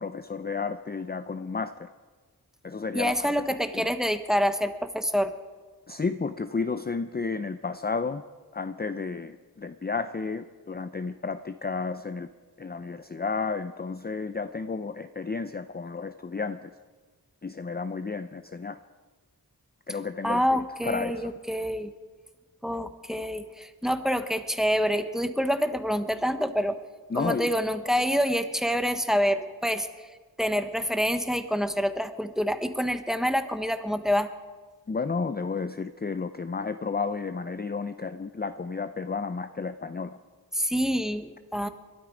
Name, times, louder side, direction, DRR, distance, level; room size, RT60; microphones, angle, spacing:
voice 1, 0.0-1.9 2.6-3.3 3.7-3.9 5.9-8.2 8.5-12.3 12.6-16.7 17.4-18.8 19.9-21.3 27.1-27.5 34.9-40.2, left 4 dB, 25° left, 11 dB, 0.5 m, -32 dB
voice 2, 2.9-5.3 20.2-21.9 22.6-26.8 27.1-29.9 30.4-34.3 40.5-41.7, equal, ahead, 9 dB, 1.1 m, -27 dB
22.0 x 12.5 x 5.0 m, 1.4 s
wide cardioid pair, 60°, 38 cm